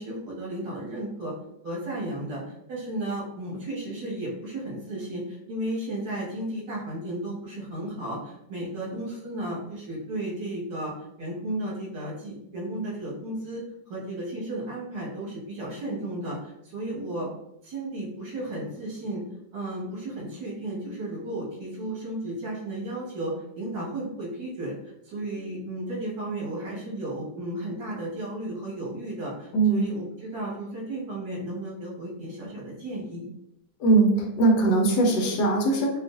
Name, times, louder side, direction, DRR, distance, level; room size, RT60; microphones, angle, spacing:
voice 1, 0.0-1.3 1.6-10.9 11.2-17.3 17.6-19.2 19.5-24.7 25.0-33.3, right 1 dB, 90° right, -6 dB, 2.1 m, -34 dB
voice 2, 33.8-35.9, right 3 dB, 70° left, 0 dB, 1.3 m, -21 dB
4.3 x 2.4 x 2.5 m, 0.85 s
omnidirectional pair, 1.9 m